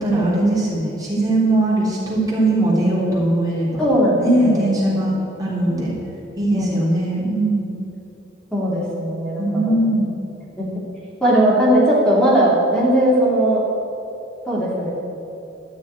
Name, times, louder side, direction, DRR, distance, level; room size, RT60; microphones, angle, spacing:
voice 1, 0.0-3.9 4.2-5.1 5.4-5.9 6.4-7.8 9.4-10.1, right 1 dB, 20° right, -6 dB, 3.4 m, -20 dB
voice 2, 3.8-4.7 6.5-6.8 8.5-9.8 10.6-10.7 11.2-13.6 14.5-14.9, right 1 dB, 5° left, -6 dB, 3.1 m, -18 dB
13.0 x 6.2 x 9.6 m, 2.8 s
head